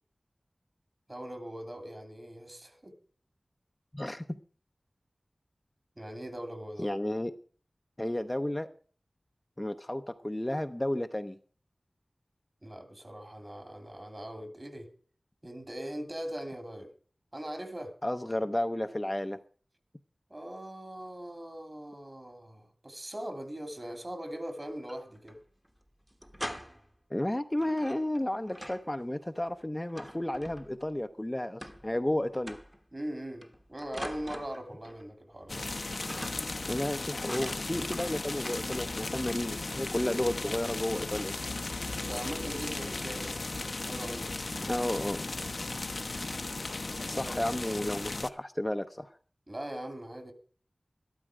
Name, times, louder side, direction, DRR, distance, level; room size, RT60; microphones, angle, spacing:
voice 1, 1.1-2.9 6.0-6.9 12.6-14.9 15.4-16.9 17.3-18.0 20.3-25.4 32.9-35.6 41.9-43.5 43.8-44.7 46.9-47.6 49.5-50.3, right 1 dB, 35° right, 8 dB, 2.8 m, -41 dB
voice 2, 3.9-4.4 6.8-7.3 8.0-8.7 9.6-11.4 18.0-19.4 27.1-32.6 36.7-41.3 44.7-45.2 47.1-49.1, left 1 dB, 20° left, 7 dB, 0.7 m, -32 dB
sound 1, 24.7-25.4 25.6-25.7 26.1-27.0 27.6-28.9 29.2-30.9 31.6-32.1 32.3-32.8 33.4-35.1 35.3-35.7 36.0-36.7 37.2-39.2 40.0-40.1 40.6-40.9 41.2-41.4 41.8-42.1, equal, 5° right, 1.2 m, -44 dB
sound 2, 35.5-48.3, left 2 dB, 65° left, 0.8 m, -36 dB
13.0 x 12.5 x 5.0 m, 0.42 s
wide cardioid pair, 65°, 0 cm